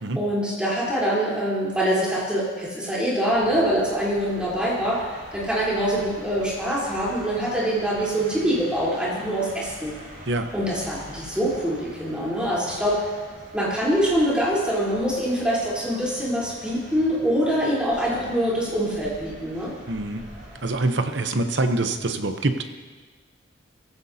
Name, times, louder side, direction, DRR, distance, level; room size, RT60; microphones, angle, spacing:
voice 1, 0.1-10.0 10.5-13.1 13.5-19.7, equal, 5° right, -8 dB, 3.8 m, -24 dB
sound 1, 3.3-20.7, equal, 45° right, 5.1 m, -44 dB
voice 2, 19.9-20.2 20.6-22.6, right 2 dB, 65° right, 7 dB, 0.9 m, -25 dB
17.0 x 15.0 x 2.8 m, 1.4 s
head